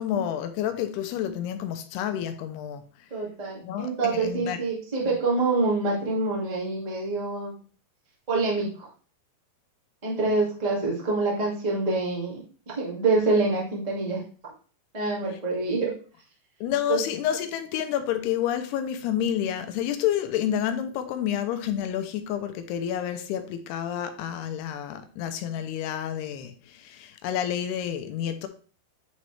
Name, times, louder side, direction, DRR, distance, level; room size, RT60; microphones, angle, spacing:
voice 1, 0.0-2.8 3.6-4.6 16.6-28.5, left 10 dB, 80° left, 2.5 m, -29 dB
voice 2, 3.1-7.6 8.3-8.9 10.0-12.4 12.7-14.2 14.9-15.9 16.9-17.0, right 3 dB, 50° right, 0.4 m, -26 dB
9.9 x 4.0 x 3.3 m
omnidirectional pair, 4.9 m